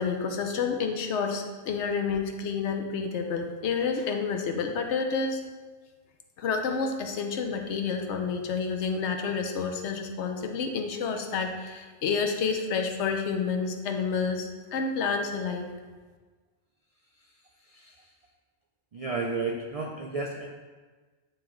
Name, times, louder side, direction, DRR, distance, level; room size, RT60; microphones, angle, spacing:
voice 1, 0.0-5.4 6.4-15.7, left 5 dB, 80° left, 4 dB, 1.0 m, -29 dB
voice 2, 17.7-18.1 18.9-20.5, right 3 dB, 60° right, 1 dB, 0.3 m, -32 dB
9.1 x 3.7 x 3.0 m, 1.4 s
omnidirectional pair, 1.1 m